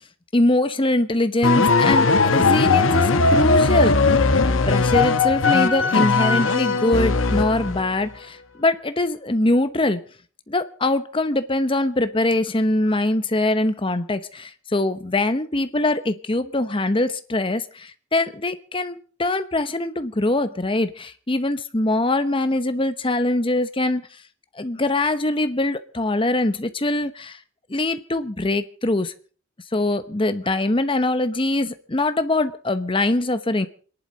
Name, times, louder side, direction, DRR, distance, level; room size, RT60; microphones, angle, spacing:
voice 1, 0.3-4.0 4.7-10.0 10.5-24.1 24.6-27.4 27.7-29.1 29.7-33.7, left 2 dB, 25° left, 11 dB, 0.9 m, -23 dB
sound 1, 1.4-7.9, left 3 dB, 80° left, 1.2 m, -18 dB
28.5 x 11.0 x 4.0 m, 0.42 s
head